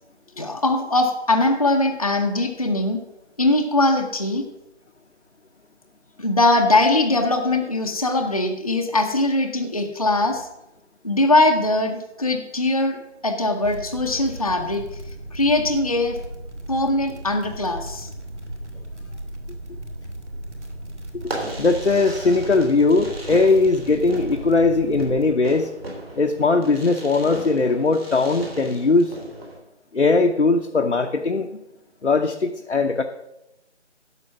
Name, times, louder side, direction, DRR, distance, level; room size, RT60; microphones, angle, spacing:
voice 1, 0.4-3.0 3.4-4.4 6.2-10.5 11.0-13.0 13.2-14.8 15.3-16.2 16.7-18.1, left 2 dB, 30° left, 3 dB, 0.7 m, -21 dB
Synthetic Fire Effect, 13.6-25.3, right 1 dB, 75° right, 2.1 m, -36 dB
voice 2, 21.2-25.7 26.2-29.2 29.9-31.5 32.0-33.0, left 3 dB, 70° left, 4 dB, 0.9 m, -19 dB
Fireworks, 21.2-29.6, right 2 dB, 55° right, 3.4 m, -36 dB
11.0 x 6.7 x 6.1 m, 0.89 s
figure-of-eight pair, 160°, 35 cm